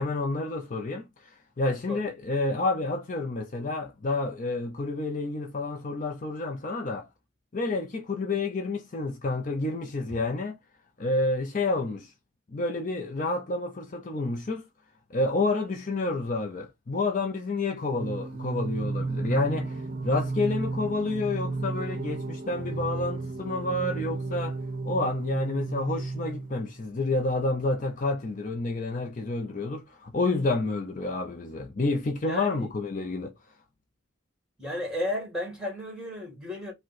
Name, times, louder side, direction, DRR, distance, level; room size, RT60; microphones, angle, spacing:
voice 1, 0.0-1.3 1.6-7.1 7.5-10.6 11.0-12.1 12.5-14.6 15.1-24.6 24.8-33.3, left 2 dB, 40° left, 0.5 m, -29 dB
Singing, 17.9-26.8, right 3 dB, 45° right, 0.6 m, -33 dB
voice 2, 32.3-32.7 34.6-36.7, left 1 dB, 5° right, 1.7 m, -33 dB
5.1 x 2.2 x 3.9 m
head